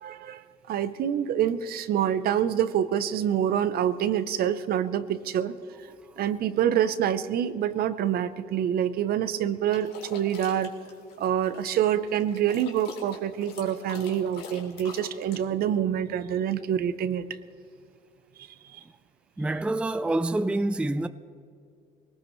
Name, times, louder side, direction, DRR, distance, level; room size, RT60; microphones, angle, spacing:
voice 1, 0.0-5.5 6.2-10.7 11.2-17.2 18.7-18.8, right 10 dB, 65° right, 0.8 m, -26 dB
sound 1, 9.7-15.4, left 4 dB, 70° left, 2.9 m, -45 dB
voice 2, 19.4-21.1, right 2 dB, 5° right, 0.4 m, -26 dB
22.0 x 18.5 x 3.2 m
cardioid pair, 110°, 17 cm